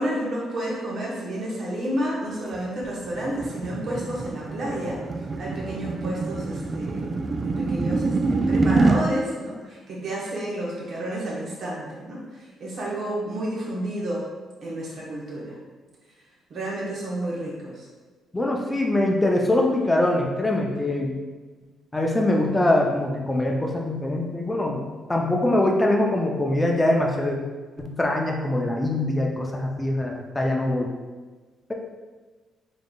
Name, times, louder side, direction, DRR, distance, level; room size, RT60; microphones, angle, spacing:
voice 1, 0.0-7.1 7.4-14.2 14.6-15.6 16.5-17.9, right 1 dB, 60° right, -4 dB, 1.2 m, -31 dB
sound 1, 2.5-9.0, right 3 dB, 35° right, 0.3 m, -25 dB
voice 2, 18.3-21.1 21.9-24.8 25.1-27.4 27.8-30.9, left 1 dB, 15° left, 0 dB, 0.6 m, -23 dB
3.9 x 3.5 x 2.4 m, 1.3 s
cardioid pair, 90°, 0 cm